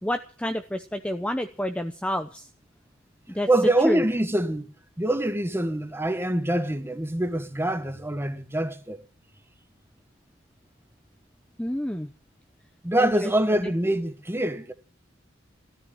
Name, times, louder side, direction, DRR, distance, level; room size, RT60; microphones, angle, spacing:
voice 1, 0.0-2.5 3.3-3.5 3.8-4.0 11.6-12.1 13.0-13.7, equal, 5° left, 0.7 m, -29 dB
voice 2, 3.5-4.7 5.0-9.0 12.8-14.7, right 1 dB, 10° right, 1.4 m, -25 dB
14.0 x 13.5 x 7.3 m
head